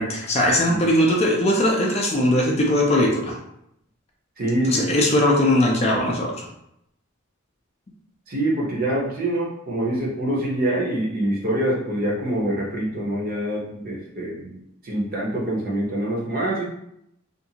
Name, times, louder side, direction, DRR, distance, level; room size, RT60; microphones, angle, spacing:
voice 1, 0.0-3.4 4.7-6.5, left 1 dB, 30° left, -1 dB, 0.4 m, -20 dB
voice 2, 4.4-4.8 8.3-14.6 14.8-16.6, right 1 dB, 45° right, -3 dB, 0.7 m, -25 dB
2.5 x 2.4 x 2.8 m, 0.78 s
head